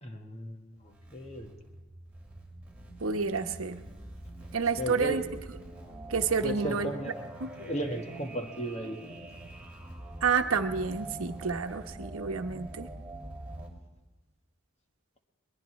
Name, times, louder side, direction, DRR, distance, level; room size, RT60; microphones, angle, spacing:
voice 1, 0.0-1.5 4.8-5.2 6.4-7.3 7.6-9.0, right 1 dB, 30° left, 4 dB, 1.5 m, -36 dB
sound 1, 0.8-13.7, right 1 dB, 5° right, 2.7 m, -45 dB
voice 2, 3.0-3.8 4.5-5.2 6.1-6.9 7.4-7.5 10.2-12.9, right 5 dB, 80° right, 7 dB, 1.0 m, -29 dB
22.0 x 20.5 x 3.2 m, 1.2 s
head